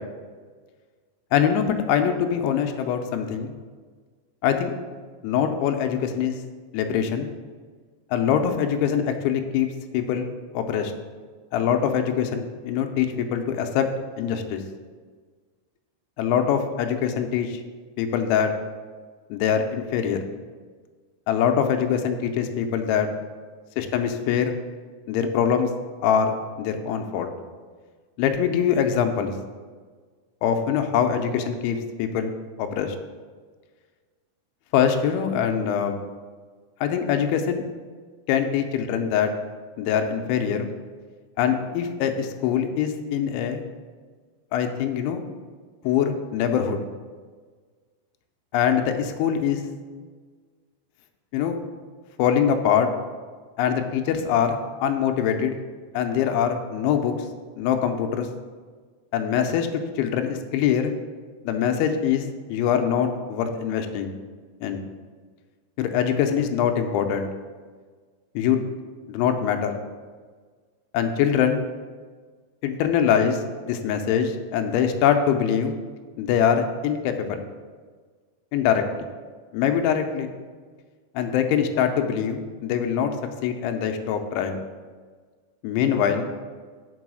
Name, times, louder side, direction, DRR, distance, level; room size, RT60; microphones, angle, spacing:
voice 1, 1.3-3.5 4.4-4.7 5.2-6.4 6.7-7.3 8.1-9.7 9.9-10.3 10.5-10.9 11.5-13.9 14.2-14.6 16.2-17.6 18.0-18.5 19.3-20.2 21.3-23.1 23.8-24.6 25.1-25.7 26.0-27.3 28.2-29.3 30.4-32.3 32.6-33.0 34.7-36.0 36.8-37.6 38.3-39.3 39.8-40.7 41.4-43.6 44.5-45.2 45.8-46.8 48.5-49.6 51.3-51.6 52.2-52.9 53.6-55.6 55.9-57.1 57.6-58.3 59.1-60.9 61.4-62.2 62.5-64.1 64.6-64.8 65.8-67.3 68.4-68.6 69.1-69.8 70.9-71.6 72.6-75.7 76.2-77.4 78.5-79.1 79.5-80.3 81.2-83.1 83.4-84.6 85.6-86.3, left 8 dB, 85° left, 6 dB, 3.0 m, -23 dB
6.1 x 4.7 x 6.1 m, 1.5 s
omnidirectional pair, 5.4 m